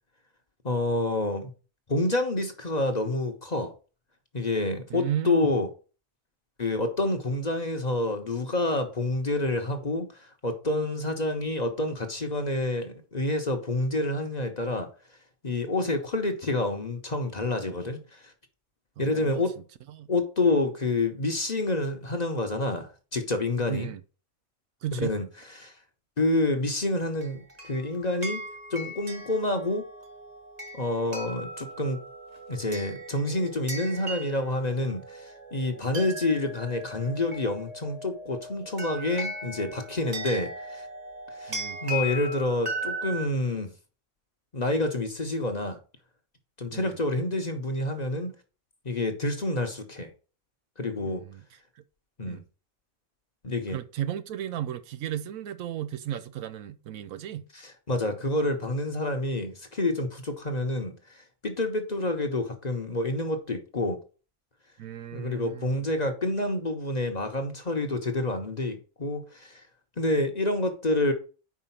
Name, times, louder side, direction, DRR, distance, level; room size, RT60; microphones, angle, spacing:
voice 1, 0.6-1.5 1.9-3.7 4.3-5.7 6.6-14.9 15.4-18.3 19.0-19.6 20.1-23.9 24.9-25.3 25.6-25.7 26.2-28.4 28.7-29.8 30.7-32.0 32.5-40.9 41.3-43.7 44.5-45.8 46.6-48.3 48.8-50.1 50.8-51.2 52.2-52.4 53.4-53.8 57.5-64.0 65.1-69.6 70.0-71.1, left 2 dB, 35° left, 0.9 m, -28 dB
voice 2, 4.9-5.5 19.0-20.1 23.7-24.0 24.8-25.2 41.5-41.8 46.7-47.0 51.0-51.4 51.8-51.9 52.3-52.4 53.7-57.5 64.8-65.8, right 11 dB, 80° right, 1.1 m, -35 dB
sound 1, 27.2-43.3, equal, 30° right, 1.2 m, -38 dB
5.0 x 4.9 x 5.7 m
omnidirectional pair, 1.4 m